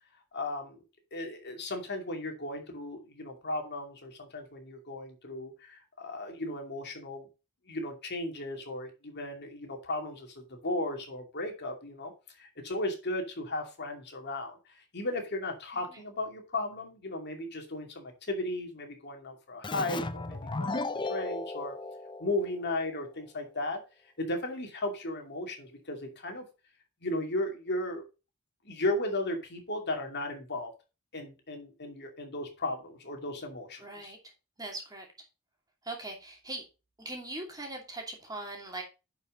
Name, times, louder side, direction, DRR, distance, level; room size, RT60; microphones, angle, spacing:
voice 1, 0.3-0.8 1.1-7.3 7.7-20.8 21.1-21.7 22.2-26.4 27.0-28.0 28.6-30.7 31.1-34.1, left 1 dB, 50° left, 3 dB, 2.6 m, -35 dB
Keyboard (musical), 19.6-23.0, left 2 dB, 20° left, 0.6 m, -36 dB
voice 2, 33.8-34.2 34.6-35.1 35.8-36.7 37.0-38.8, right 2 dB, 20° right, 2 dB, 2.6 m, -40 dB
10.5 x 5.6 x 3.9 m, 0.29 s
head